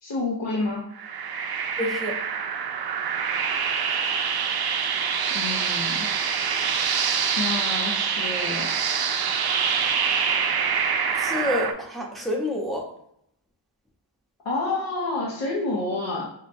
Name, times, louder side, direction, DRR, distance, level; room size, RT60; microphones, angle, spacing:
voice 1, 0.0-0.9 5.3-6.1 7.4-8.7 14.4-16.3, left 3 dB, 75° left, -3 dB, 0.8 m, -29 dB
sound 1, 1.0-11.7, right 6 dB, 55° right, 0.5 m, -25 dB
voice 2, 1.8-2.2 11.1-12.9, left 1 dB, ahead, -1 dB, 0.8 m, -28 dB
5.5 x 2.1 x 2.6 m, 0.74 s
cardioid pair, 60°, 46 cm